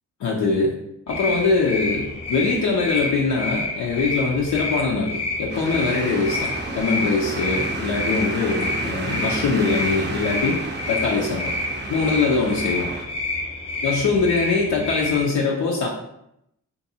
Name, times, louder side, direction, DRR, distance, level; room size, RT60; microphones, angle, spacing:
voice 1, 0.2-0.8 1.1-10.6 10.9-11.5 11.9-12.9 13.8-15.9, left 4 dB, 65° left, -2 dB, 0.5 m, -22 dB
sound 1, 1.1-15.2, left 2 dB, 20° left, 0.7 m, -29 dB
sound 2, 5.5-13.0, right 3 dB, 35° right, 0.5 m, -32 dB
2.5 x 2.3 x 2.7 m, 0.79 s
cardioid pair, 65°, 32 cm